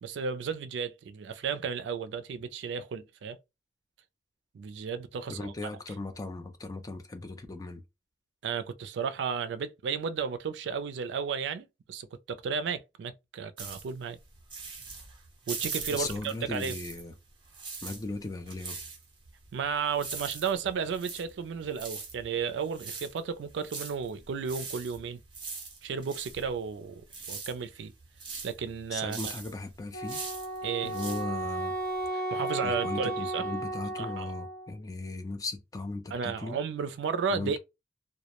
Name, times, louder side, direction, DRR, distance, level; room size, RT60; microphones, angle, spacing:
voice 1, 0.0-3.4 4.5-5.5 8.4-14.2 15.5-16.8 19.5-25.2 25.8-27.9 28.4-29.3 30.6-30.9 32.1-33.4 34.0-34.3 36.1-37.6, right 6 dB, 80° right, 0.3 m, -33 dB
voice 2, 5.3-7.8 15.9-17.1 17.8-18.8 28.9-30.2 30.8-31.7 32.6-36.6 37.3-37.6, left 2 dB, 20° left, 0.3 m, -37 dB
sound 1, 13.6-17.2 17.4-32.1, right 4 dB, 25° right, 0.7 m, -42 dB
Wind instrument woodwind instrument, 29.9-34.7, right 2 dB, 65° left, 1.0 m, -34 dB
2.1 x 2.0 x 2.8 m
head